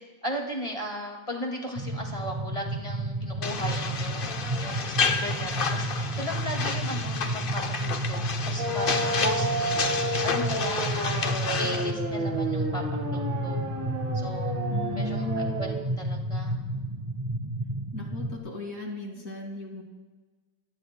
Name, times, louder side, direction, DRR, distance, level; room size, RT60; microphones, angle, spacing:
voice 1, 0.0-4.2 4.6-9.7 10.2-12.8 13.1-13.6 14.1-14.5 14.9-16.5, equal, 20° left, 1 dB, 2.1 m, -36 dB
sound 1, 1.8-18.4, right 1 dB, 25° right, 0.7 m, -32 dB
sound 2, 3.4-11.9, left 5 dB, 75° left, 0.5 m, -31 dB
sound 3, 8.6-15.7, right 1 dB, 85° right, 2.7 m, -31 dB
voice 2, 14.7-15.8 17.9-19.8, left 2 dB, 45° left, 0 dB, 2.7 m, -37 dB
25.5 x 16.0 x 2.2 m, 1.3 s
omnidirectional pair, 2.1 m